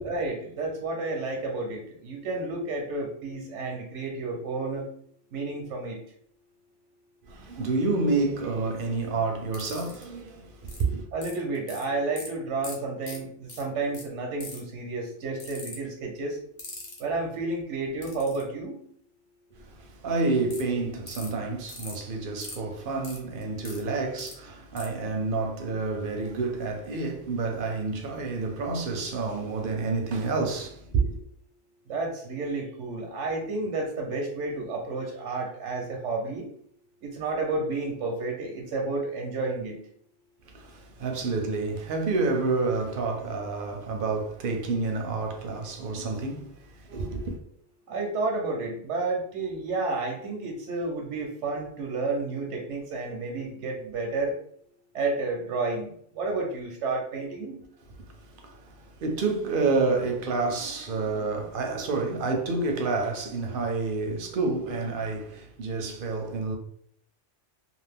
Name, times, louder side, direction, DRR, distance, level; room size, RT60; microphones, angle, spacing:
voice 1, 0.0-4.9 5.3-6.0 11.1-16.4 17.0-18.8 31.9-36.5 37.0-39.8 47.9-54.4 54.9-57.6, right 3 dB, 90° right, 0.9 m, -31 dB
voice 2, 7.2-11.0 19.5-31.2 40.4-47.4 58.0-66.6, right 3 dB, 60° right, 0.6 m, -29 dB
sound 1, 9.5-10.0 10.7-10.8 11.2-11.8 12.2-12.3 12.6-12.7 13.0-13.2 13.5-13.6 13.9-14.0 14.4-14.7 15.4-15.8 16.6-17.0 18.0-18.4 20.5-20.6 21.1-21.3 21.7-21.9 22.4-22.5 23.0-23.8 24.2-24.3 24.8-24.9, left 3 dB, 45° left, 0.9 m, -40 dB
2.5 x 2.4 x 3.4 m
omnidirectional pair, 1.2 m